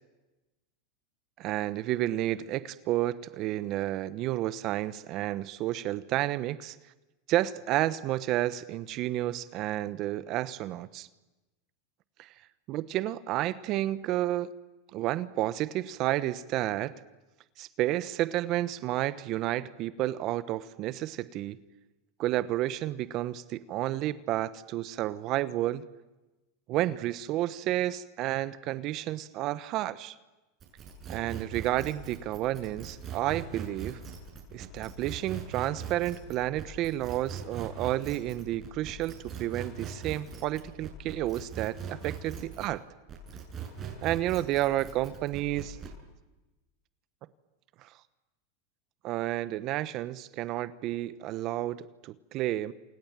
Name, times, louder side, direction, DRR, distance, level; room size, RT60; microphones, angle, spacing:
voice 1, 1.4-6.8 7.3-11.1 12.2-12.3 12.7-14.5 14.9-16.9 17.6-21.6 22.2-25.8 26.7-30.1 31.1-34.0 34.5-42.8 44.0-45.8 47.8-47.9 49.0-52.7, right 14 dB, 50° right, 15 dB, 1.0 m, -31 dB
sound 1, 30.6-42.8 43.1-46.0, right 6 dB, 35° right, 7.9 m, -41 dB
28.5 x 27.5 x 7.5 m, 1.1 s
hypercardioid pair, 110°, 0 cm